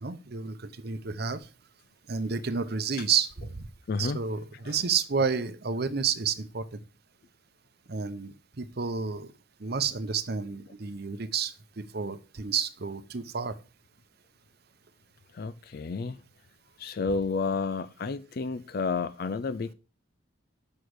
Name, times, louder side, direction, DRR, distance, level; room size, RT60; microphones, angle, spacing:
voice 1, 0.0-1.5 2.1-3.7 4.0-6.8 7.9-9.3 9.6-13.6, right 6 dB, 50° right, 0.8 m, -30 dB
voice 2, 3.9-4.2 4.7-4.8 15.3-16.2 16.8-19.7, left 4 dB, 50° left, 0.4 m, -31 dB
8.4 x 6.4 x 4.7 m
head